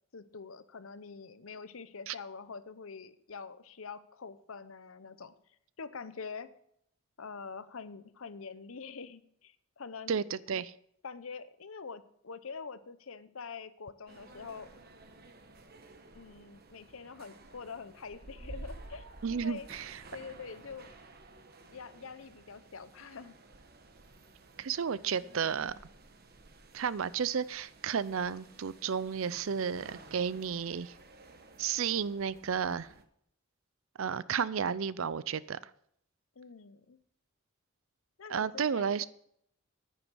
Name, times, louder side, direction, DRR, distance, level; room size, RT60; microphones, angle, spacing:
voice 1, 0.1-5.3 5.8-6.5 7.2-10.2 11.0-14.7 16.1-19.7 20.1-20.9 21.7-23.4 36.4-37.0 38.2-39.1, left 5 dB, 75° left, 14 dB, 0.8 m, -45 dB
voice 2, 10.1-10.7 19.2-20.0 24.6-25.7 26.7-30.9 31.6-32.9 34.0-35.7 38.3-39.0, right 7 dB, 70° right, 18 dB, 0.5 m, -32 dB
sound 1, 14.1-33.1, right 2 dB, 45° right, 1.1 m, -53 dB
10.0 x 9.5 x 6.3 m, 0.70 s
head